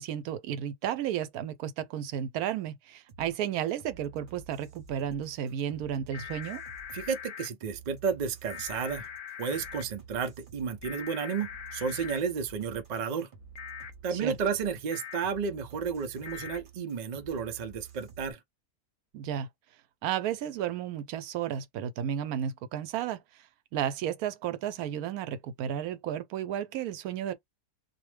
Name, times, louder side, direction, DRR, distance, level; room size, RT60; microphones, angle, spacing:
voice 1, 0.0-6.6 14.1-14.4 19.1-19.5 20.0-23.2 23.7-27.3, right 10 dB, 90° right, 1.1 m, -33 dB
sound 1, 3.1-18.3, right 6 dB, 45° right, 0.8 m, -51 dB
sound 2, 6.1-7.5 8.5-9.8 10.8-12.2 13.6-13.9 14.9-15.2 16.2-16.6, left 9 dB, 65° left, 0.9 m, -42 dB
voice 2, 6.9-9.1 9.4-13.3 14.0-18.4, right 6 dB, 60° right, 0.4 m, -32 dB
2.6 x 2.1 x 3.2 m
omnidirectional pair, 1.5 m